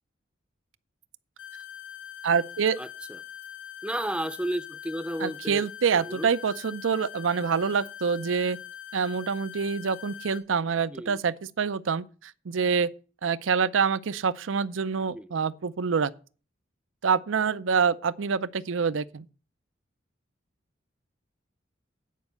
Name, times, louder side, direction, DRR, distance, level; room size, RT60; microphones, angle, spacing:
sound 1, 1.4-10.4, left 10 dB, 80° left, 1.7 m, -43 dB
voice 1, 2.2-2.8 5.2-8.6 8.9-12.9 13.2-16.1 17.0-19.2, right 6 dB, 90° right, 0.5 m, -26 dB
voice 2, 2.8-3.2 3.8-5.7 5.9-6.3 10.9-11.2 15.1-15.3, right 1 dB, 5° right, 0.5 m, -33 dB
9.2 x 5.3 x 8.1 m
head